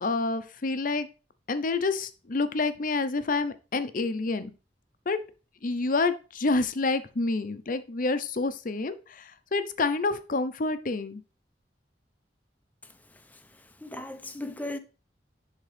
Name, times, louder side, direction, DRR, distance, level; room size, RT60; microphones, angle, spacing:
voice 1, 0.0-1.1 1.5-4.5 5.1-5.2 5.6-11.2, left 3 dB, 50° left, 0.7 m, -28 dB
voice 2, 12.8-14.8, left 1 dB, 10° left, 0.7 m, -39 dB
10.5 x 3.7 x 3.3 m
head